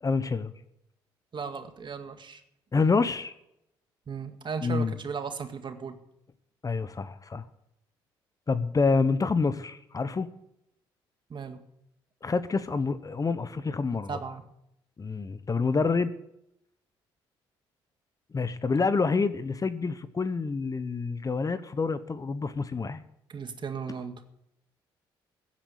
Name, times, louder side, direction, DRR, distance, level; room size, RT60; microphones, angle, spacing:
voice 1, 0.0-0.5 2.7-3.3 4.6-5.0 6.6-7.4 8.5-10.3 12.2-14.1 15.0-16.1 18.3-23.0, left 4 dB, 30° left, 14 dB, 1.0 m, -27 dB
voice 2, 1.3-2.4 4.1-6.0 11.3-11.6 14.1-14.5 23.3-24.2, right 5 dB, 45° right, 7 dB, 2.0 m, -36 dB
15.5 x 8.6 x 8.2 m, 0.80 s
hypercardioid pair, 55°, 11 cm